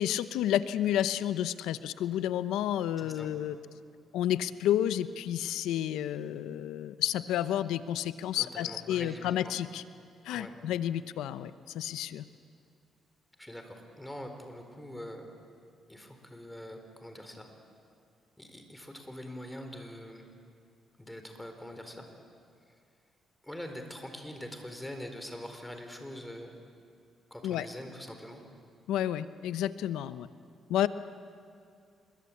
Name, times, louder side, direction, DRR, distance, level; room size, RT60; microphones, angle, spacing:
voice 1, 0.0-3.6 4.1-9.8 10.2-12.2 27.4-27.7 28.9-30.3 30.7-30.9, left 11 dB, 90° left, 13 dB, 0.8 m, -30 dB
voice 2, 3.0-3.3 8.4-9.5 10.3-10.5 13.4-15.3 15.9-17.5 18.4-20.2 21.0-22.0 23.4-26.5 27.3-28.4, left 1 dB, 5° left, 5 dB, 4.3 m, -44 dB
27.0 x 22.5 x 8.6 m, 2.4 s
cardioid pair, 90°, 0 cm